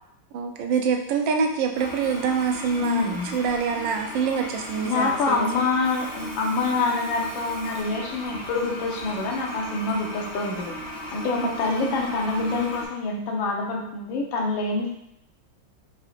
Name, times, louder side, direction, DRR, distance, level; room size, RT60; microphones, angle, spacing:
voice 1, 0.3-5.5 11.4-12.0, right 6 dB, 85° right, 3 dB, 1.3 m, -26 dB
Toilet flush, 1.7-12.9, left 1 dB, 40° left, 1.0 m, -37 dB
voice 2, 2.8-3.3 4.8-10.7 11.1-14.9, left 3 dB, 85° left, 0 dB, 1.6 m, -26 dB
4.6 x 3.8 x 2.4 m, 0.81 s
omnidirectional pair, 2.0 m